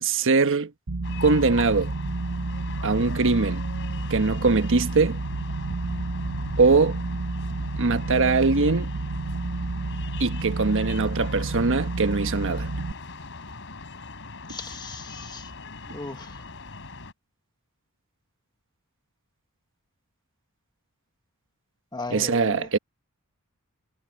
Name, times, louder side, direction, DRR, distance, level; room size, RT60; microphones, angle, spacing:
voice 1, 0.0-0.7 1.2-1.9 2.8-3.6 4.1-5.2 6.6-7.0 7.8-8.9 10.2-12.7 22.1-22.8, right 4 dB, 60° right, 1.2 m, -22 dB
sound 1, 0.9-12.9, right 3 dB, 90° right, 1.1 m, -30 dB
sound 2, 1.0-17.1, left 3 dB, 60° left, 5.0 m, -40 dB
voice 2, 14.5-15.5 15.9-16.4 21.9-22.8, left 3 dB, 20° left, 1.5 m, -37 dB
head